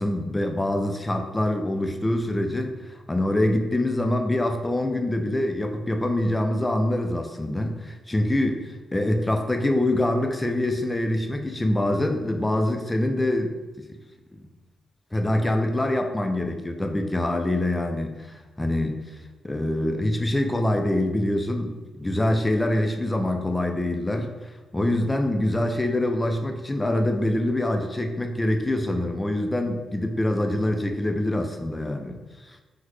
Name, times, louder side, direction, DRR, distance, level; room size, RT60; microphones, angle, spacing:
voice 1, 0.0-13.5 13.9-14.0 14.3-14.5 15.1-19.0 19.4-32.6, left 1 dB, 15° left, 5 dB, 0.3 m, -25 dB
3.9 x 2.0 x 3.1 m, 1.2 s
cardioid pair, 115°, 0 cm